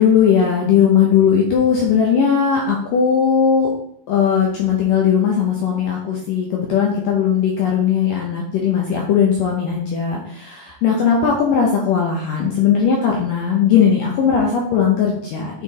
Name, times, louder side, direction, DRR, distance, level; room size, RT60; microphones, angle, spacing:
voice 1, 0.0-3.7 4.1-15.6, left 7 dB, 80° left, -1 dB, 2.0 m, -18 dB
6.6 x 6.0 x 4.1 m, 0.71 s
omnidirectional pair, 5.2 m